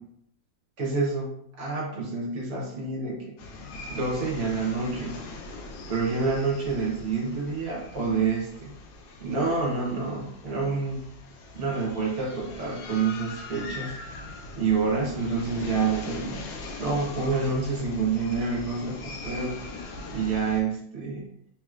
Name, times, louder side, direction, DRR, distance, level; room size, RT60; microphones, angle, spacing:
voice 1, 0.8-1.3 1.6-3.2 3.9-5.2 5.9-8.7 9.2-11.0 11.5-14.0 14.6-19.6 20.1-21.3, right 4 dB, 45° right, -3 dB, 1.2 m, -28 dB
sound 1, 3.4-20.6, left 2 dB, 75° left, 1.3 m, -41 dB
3.5 x 3.0 x 2.4 m, 0.72 s
omnidirectional pair, 2.1 m